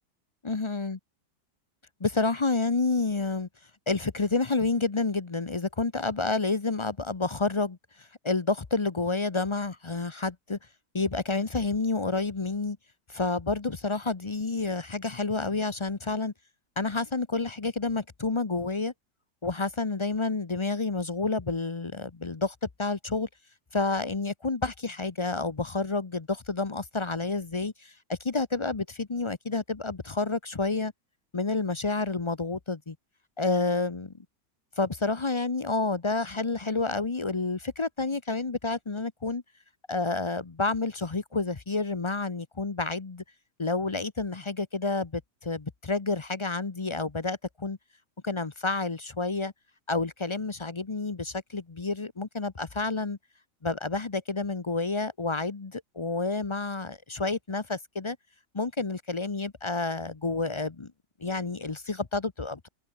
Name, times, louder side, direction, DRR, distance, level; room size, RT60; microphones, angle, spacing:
voice 1, 0.4-1.0 2.0-3.5 3.9-10.6 10.9-12.8 13.1-16.3 16.8-18.9 19.4-23.3 23.7-30.9 31.3-33.0 33.4-34.1 34.8-39.4 39.9-43.2 43.6-47.8 48.2-49.5 49.9-53.2 53.6-58.2 58.5-60.9 61.2-62.7, left 3 dB, 30° left, 0.5 m, -29 dB
open air
omnidirectional pair, 1.8 m